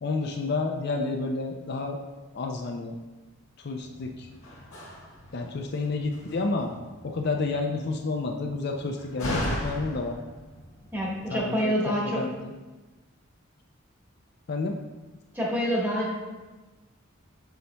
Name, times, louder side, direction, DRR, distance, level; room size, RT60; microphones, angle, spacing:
voice 1, 0.0-2.0 2.3-3.0 3.6-4.3 5.3-6.7 7.0-10.2 11.3-12.5 14.5-14.8, left 3 dB, 50° left, 3 dB, 0.4 m, -30 dB
Slam, 3.8-11.4, left 1 dB, 70° left, 1.7 m, -38 dB
voice 2, 10.9-12.2 15.3-16.1, equal, 10° right, -5 dB, 1.3 m, -27 dB
6.9 x 6.4 x 2.2 m, 1.2 s
head